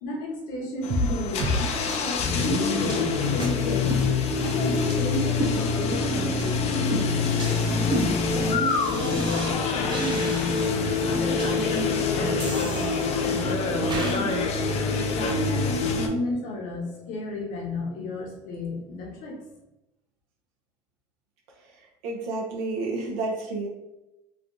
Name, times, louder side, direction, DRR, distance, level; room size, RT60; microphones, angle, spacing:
voice 1, 0.0-3.9 4.4-6.8 7.4-14.4 15.1-19.4, left 1 dB, 70° left, -1 dB, 1.0 m, -33 dB
sound 1, 0.8-16.1, left 4 dB, 50° left, 0.4 m, -26 dB
sound 2, 0.9-1.1 1.4-1.6 1.9-2.0 2.4-2.5 2.9-3.0 3.4-3.5 3.9-4.5 4.9-5.0 5.4-6.0 6.4-6.5 6.9-9.5 9.9-10.8 11.4-11.5 12.4-13.4 13.9-14.2, right 1 dB, 35° right, 0.7 m, -32 dB
sound 3, 2.4-18.0, right 2 dB, ahead, 0.7 m, -37 dB
voice 2, 22.0-23.7, right 3 dB, 85° right, -1 dB, 0.7 m, -30 dB
3.3 x 2.3 x 2.6 m, 0.91 s
supercardioid pair, 115°, 14 cm